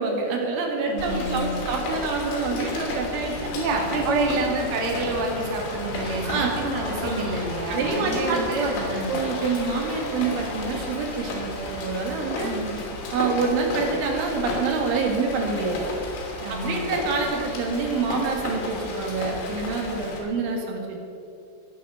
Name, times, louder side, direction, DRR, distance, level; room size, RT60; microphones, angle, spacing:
voice 1, 0.0-3.5 4.1-4.3 6.2-6.5 7.0-7.2 7.7-8.7 9.1-12.6 13.1-15.8 16.5-21.0, right 4 dB, 70° right, 1 dB, 4.4 m, -27 dB
voice 2, 0.9-1.6 3.5-9.1 12.4-12.7 16.4-17.0, right 2 dB, 40° right, 0 dB, 2.1 m, -28 dB
Rain, 1.0-20.2, left 2 dB, 80° left, 5.6 m, -33 dB
20.0 x 9.5 x 6.9 m, 2.6 s
omnidirectional pair, 5.9 m